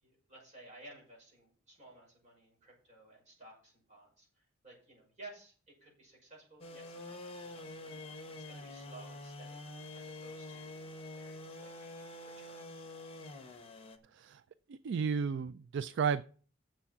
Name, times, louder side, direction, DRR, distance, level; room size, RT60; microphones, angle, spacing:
voice 1, 0.0-9.6 9.9-11.9 12.2-12.7, right 2 dB, 35° right, 5.9 m, -56 dB
sound 1, 6.6-14.0, left 2 dB, 30° left, 1.2 m, -47 dB
voice 2, 14.7-16.2, right 6 dB, 60° right, 0.3 m, -33 dB
7.5 x 7.0 x 7.3 m
head